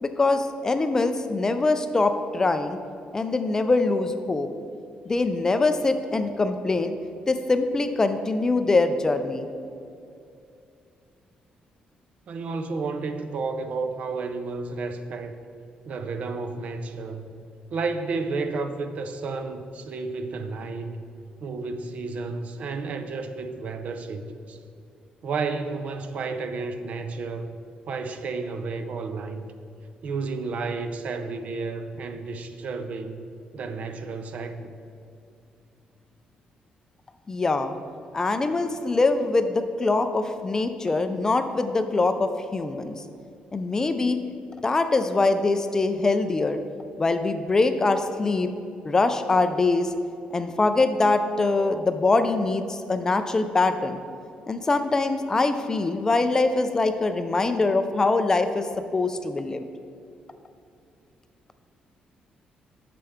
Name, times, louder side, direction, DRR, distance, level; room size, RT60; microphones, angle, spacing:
voice 1, 0.0-2.8 3.1-4.5 5.1-6.9 7.3-9.5 37.3-37.7 38.1-43.0 43.5-44.2 44.6-46.6 47.0-48.5 48.8-49.9 50.3-54.0 54.5-58.7 58.9-59.7, left 3 dB, 20° left, 8 dB, 0.3 m, -23 dB
voice 2, 12.3-15.4 15.9-17.3 17.7-21.0 21.4-24.6 25.2-27.6 27.9-29.5 30.0-33.2 33.5-34.7, right 4 dB, 50° right, 8 dB, 0.5 m, -31 dB
8.7 x 6.7 x 3.5 m, 2.6 s
cardioid pair, 160°, 3 cm